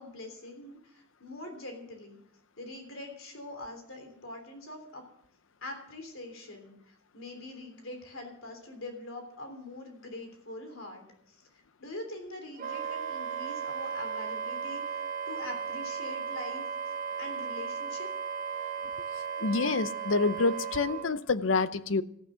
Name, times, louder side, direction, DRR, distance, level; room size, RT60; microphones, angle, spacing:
voice 1, 0.0-2.2 2.6-5.0 5.6-11.4 11.8-16.6 17.2-18.1, left 2 dB, 85° left, 4 dB, 3.4 m, -43 dB
Wind instrument woodwind instrument, 12.6-21.1, right 6 dB, 40° right, 0.9 m, -36 dB
voice 2, 19.4-22.0, left 3 dB, 70° left, 14 dB, 0.7 m, -27 dB
14.5 x 9.9 x 6.8 m, 0.71 s
head